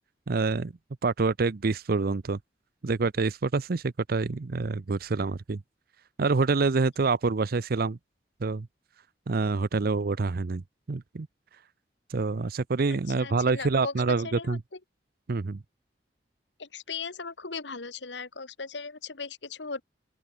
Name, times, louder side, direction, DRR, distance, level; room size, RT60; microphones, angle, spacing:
voice 1, 0.3-0.7 1.0-2.4 2.8-5.6 6.2-8.0 8.4-8.7 9.3-10.6 10.9-11.3 12.1-14.6 15.3-15.6, right 4 dB, 60° right, 0.6 m, -26 dB
voice 2, 12.9-14.8 16.6-19.8, left 4 dB, 85° left, 2.0 m, -38 dB
open air
head